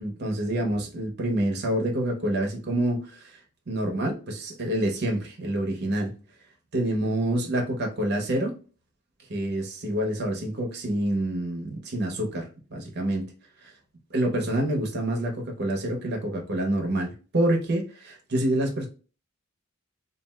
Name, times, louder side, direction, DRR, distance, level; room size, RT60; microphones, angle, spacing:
voice 1, 0.0-3.4 3.7-6.1 6.7-8.6 9.3-13.3 13.6-13.7 14.1-18.9, right 1 dB, 50° right, 0.8 m, -27 dB
3.1 x 2.5 x 2.3 m
head